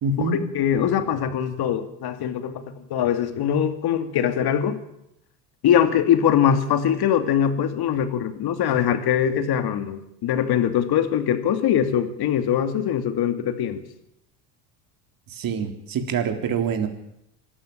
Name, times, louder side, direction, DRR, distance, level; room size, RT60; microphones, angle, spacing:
voice 1, 0.0-0.4 15.3-16.9, right 5 dB, 40° right, 7 dB, 3.7 m, -25 dB
voice 2, 0.5-4.8 5.6-13.8, left 9 dB, 50° left, 9 dB, 2.9 m, -22 dB
25.5 x 13.0 x 8.9 m, 0.80 s
hypercardioid pair, 80°, 49 cm